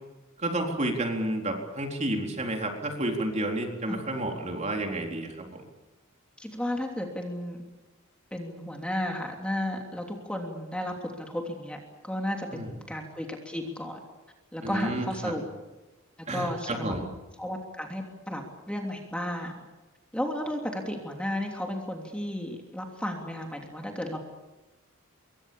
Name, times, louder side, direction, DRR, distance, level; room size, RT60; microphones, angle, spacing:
voice 1, 0.4-5.6 12.5-12.7 14.6-15.3 16.3-17.0, right 1 dB, 35° right, 2 dB, 4.2 m, -30 dB
voice 2, 6.4-7.6 8.3-14.0 14.5-15.4 16.3-17.1 17.4-19.6 20.1-24.2, left 1 dB, 5° left, 2 dB, 3.1 m, -33 dB
26.5 x 23.0 x 7.2 m, 1.1 s
head